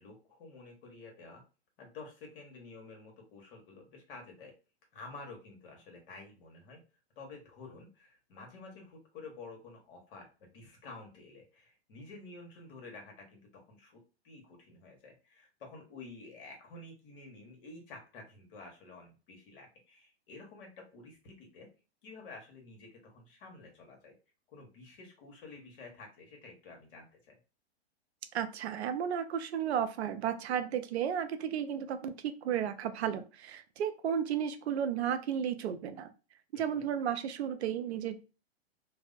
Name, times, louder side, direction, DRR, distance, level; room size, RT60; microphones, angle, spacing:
voice 1, 0.0-1.4 1.8-4.5 4.9-6.8 7.2-14.0 14.2-21.7 22.0-24.1 24.5-27.3 36.5-36.9, left 3 dB, 55° left, 2 dB, 1.1 m, -50 dB
voice 2, 28.3-32.1 32.4-36.1 36.5-38.2, right 8 dB, 80° right, 9 dB, 0.5 m, -33 dB
2.6 x 2.0 x 2.4 m, 0.32 s
hypercardioid pair, 125°, 32 cm